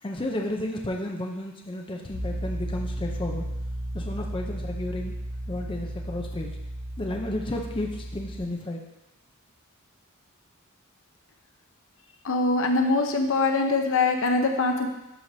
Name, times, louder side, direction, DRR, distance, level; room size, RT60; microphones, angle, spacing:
voice 1, 0.0-3.4 3.9-5.2 5.5-6.5 7.0-8.9, left 1 dB, 25° left, 1 dB, 0.6 m, -32 dB
Piano, 2.1-8.4, right 1 dB, 10° left, 2.3 m, -34 dB
voice 2, 12.2-14.9, left 3 dB, 65° left, 4 dB, 0.7 m, -23 dB
12.0 x 4.7 x 2.7 m, 0.92 s
head